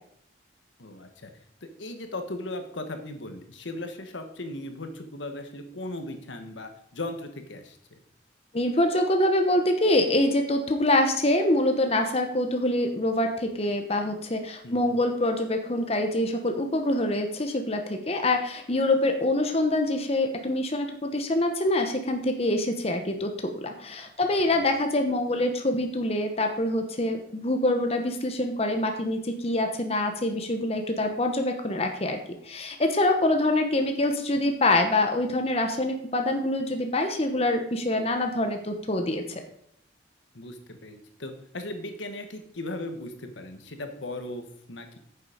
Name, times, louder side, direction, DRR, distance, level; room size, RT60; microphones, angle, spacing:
voice 1, 0.8-1.3 1.8-8.0 14.6-15.0 24.4-24.6 40.3-45.0, left 2 dB, 80° left, 7 dB, 1.3 m, -37 dB
voice 2, 8.5-39.4, left 1 dB, 30° left, 5 dB, 1.0 m, -25 dB
9.6 x 7.1 x 5.0 m, 0.70 s
head